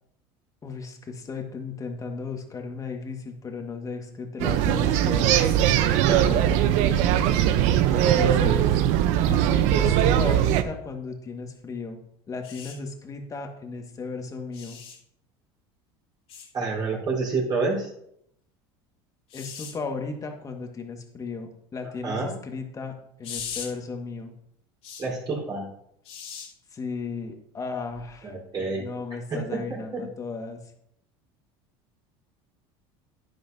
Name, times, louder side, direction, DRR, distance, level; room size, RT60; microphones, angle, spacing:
voice 1, 0.6-5.4 8.1-8.7 9.2-12.0 12.3-14.8 19.3-24.3 26.7-28.3 28.8-30.6, left 4 dB, 25° left, 3 dB, 1.8 m, -35 dB
sound 1, 4.4-10.6, right 11 dB, 65° right, 0.8 m, -20 dB
voice 2, 5.9-6.6 16.5-17.9 22.0-22.4 25.0-25.7 28.2-28.9 29.3-30.0, right 3 dB, 35° right, -3 dB, 4.2 m, -29 dB
sound 2, 12.4-12.7 14.5-15.0 16.3-16.5 19.3-19.7 23.2-23.7 24.8-25.0 26.0-26.5 27.9-28.1, left 7 dB, 50° left, 2.6 m, -38 dB
10.5 x 10.0 x 2.8 m, 0.73 s
supercardioid pair, 105°, 13 cm